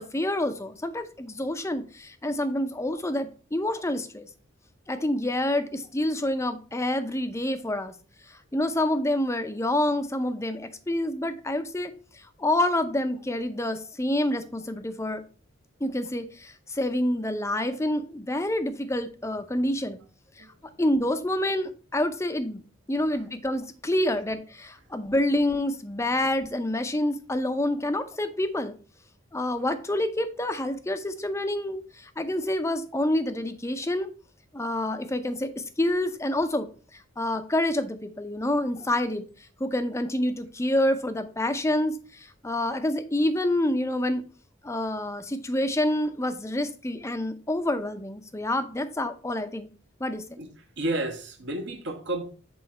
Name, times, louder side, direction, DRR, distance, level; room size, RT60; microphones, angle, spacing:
voice 1, 0.0-4.3 4.9-7.9 8.3-15.2 15.8-20.0 20.4-20.5 20.8-22.6 22.9-28.7 29.3-34.1 34.5-36.7 36.9-39.3 39.6-44.2 44.6-49.7 50.0-50.4, left 1 dB, 15° left, 0.6 m, -27 dB
voice 2, 50.8-52.2, right 1 dB, 60° right, 1.3 m, -31 dB
7.8 x 3.8 x 4.4 m
head